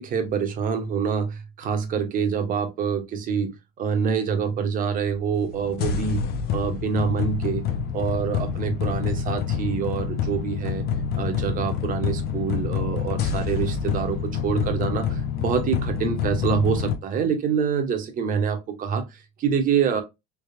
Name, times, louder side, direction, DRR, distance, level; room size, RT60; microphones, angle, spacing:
voice 1, 0.0-3.5 3.8-6.2 6.5-7.6 7.9-10.9 11.2-19.1 19.4-20.0, right 6 dB, 45° right, 1.1 m, -26 dB
sound 1, 5.2-17.0, left 7 dB, 50° left, 0.7 m, -27 dB
3.5 x 3.1 x 2.7 m
supercardioid pair, 115°, 20 cm